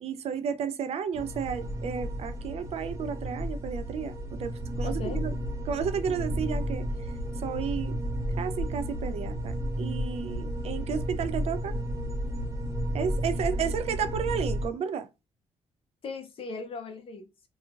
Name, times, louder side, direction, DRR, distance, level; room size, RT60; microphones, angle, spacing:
voice 1, 0.0-4.1 4.4-5.3 5.7-6.9 7.4-8.0 8.4-11.7 12.9-15.1, right 7 dB, 65° right, 0.4 m, -32 dB
sound 1, 1.1-14.7, equal, 25° right, 0.7 m, -32 dB
voice 2, 4.8-5.3 16.0-17.5, left 3 dB, 55° left, 0.6 m, -38 dB
3.0 x 2.3 x 2.3 m
cardioid pair, 75°, 12 cm